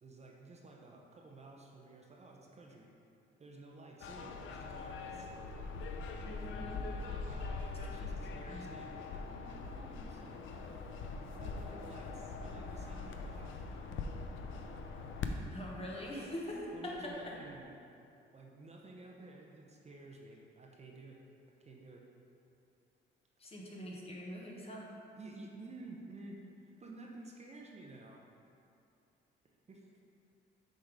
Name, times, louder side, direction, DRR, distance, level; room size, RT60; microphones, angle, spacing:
voice 1, 0.0-2.9 3.4-5.3 7.1-10.8 11.2-13.7 16.5-17.7 18.3-21.2 21.6-22.0 25.2-28.2 29.7-29.9, right 2 dB, 35° right, -1 dB, 0.8 m, -52 dB
sound 1, 4.0-17.6, left 4 dB, 80° left, 0.5 m, -43 dB
voice 2, 6.2-6.8 7.8-8.7 15.5-17.4 23.4-24.9, left 1 dB, 30° left, -3 dB, 1.1 m, -44 dB
6.5 x 3.8 x 4.8 m, 2.6 s
cardioid pair, 90°, 20 cm